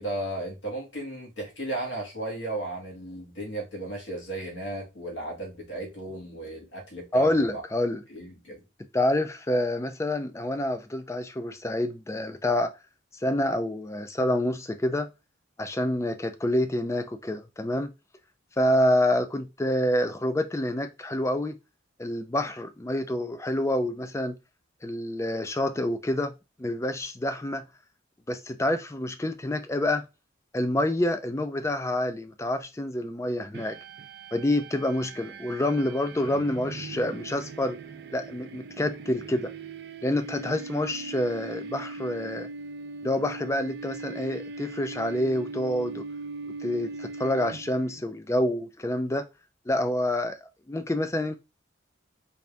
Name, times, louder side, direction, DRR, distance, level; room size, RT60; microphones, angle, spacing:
voice 1, 0.0-7.6 8.1-8.6, right 1 dB, 65° left, 1.7 m, -35 dB
voice 2, 7.1-8.0 8.9-12.7 13.2-15.1 15.6-17.9 18.6-21.6 22.0-24.4 24.8-26.3 26.6-27.6 28.3-30.1 30.5-33.8 34.3-37.8 38.1-39.5 40.0-42.5 43.0-46.0 46.6-49.2 49.7-50.4 50.7-51.4, left 1 dB, 15° left, 0.4 m, -27 dB
sound 1, 33.5-48.0, right 3 dB, 55° right, 0.4 m, -40 dB
4.1 x 2.6 x 3.4 m
head